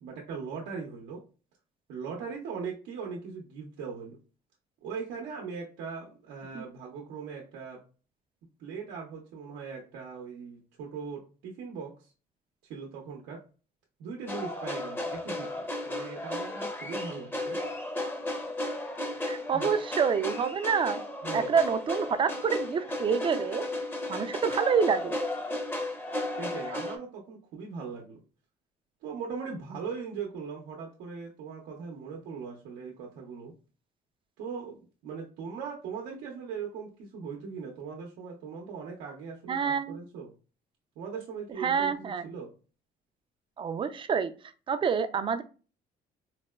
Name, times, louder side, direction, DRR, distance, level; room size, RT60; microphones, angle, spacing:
voice 1, 0.0-1.2 1.9-4.2 4.8-7.8 8.6-12.1 12.7-13.4 14.0-17.6 19.5-19.7 21.2-21.6 26.4-28.2 29.0-33.5 34.4-40.3 41.0-42.5, right 5 dB, 90° right, -1 dB, 0.7 m, -40 dB
sound 1, 14.3-27.0, left 1 dB, 15° left, 0.6 m, -34 dB
voice 2, 19.2-21.0 21.3-23.7 24.1-25.2 39.5-40.0 41.6-42.3 43.6-44.3 44.7-45.4, right 6 dB, 30° right, 10 dB, 0.3 m, -27 dB
4.0 x 2.1 x 2.2 m, 0.35 s
cardioid pair, 110°, 17 cm